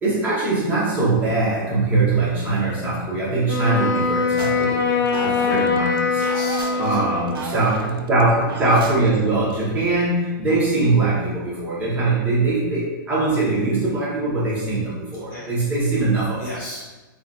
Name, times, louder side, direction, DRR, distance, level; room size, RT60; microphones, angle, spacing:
voice 1, 0.0-6.2 6.8-16.4, right 2 dB, 10° right, -8 dB, 0.9 m, -22 dB
Wind instrument woodwind instrument, 3.4-7.6, left 4 dB, 70° left, 0.5 m, -22 dB
sound 1, 4.4-9.6, right 5 dB, 90° right, 0.4 m, -35 dB
voice 2, 6.1-7.0 15.1-15.5 16.4-17.0, equal, 25° left, -6 dB, 0.5 m, -36 dB
2.7 x 2.4 x 3.5 m, 1.2 s
hypercardioid pair, 165°, 12 cm